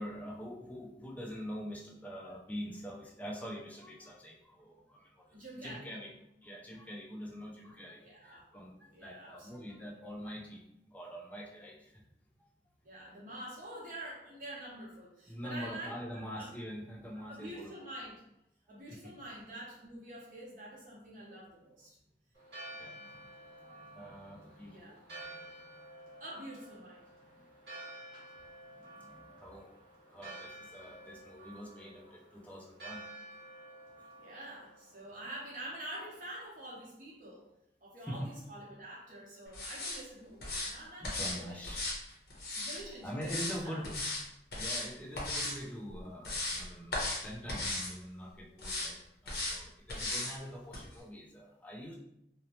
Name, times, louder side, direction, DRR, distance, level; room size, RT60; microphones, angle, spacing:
voice 1, 0.0-5.3 5.6-6.1 6.4-10.6 10.9-11.9 15.3-17.7 18.9-19.1 22.8-23.3 23.6-25.6 28.7-29.8 30.1-33.0 38.1-38.3 41.0-41.9 42.7-44.0 44.5-49.0 49.2-51.9, equal, 10° left, -2 dB, 0.3 m, -44 dB
voice 2, 5.3-5.9 8.0-8.5 8.8-9.9 12.8-16.5 17.1-18.2 18.7-22.0 24.6-25.0 26.2-27.1 30.8-31.2 34.1-37.5 37.8-41.6 42.5-43.8, right 1 dB, 45° right, -5 dB, 0.9 m, -47 dB
Church bell, 22.3-36.4, right 2 dB, 65° right, 1.2 m, -51 dB
sound 1, 39.5-40.0 40.4-40.7 41.0-41.4 41.6-42.8 43.2-43.6 43.8-44.2 44.5-44.9 45.2-45.6 46.0-46.6 46.9-47.2 47.5-47.9 48.6-48.9 49.3-49.6 49.9-50.3 50.7-50.8, left 2 dB, 60° left, 0.7 m, -36 dB
2.7 x 2.0 x 2.9 m, 0.78 s
head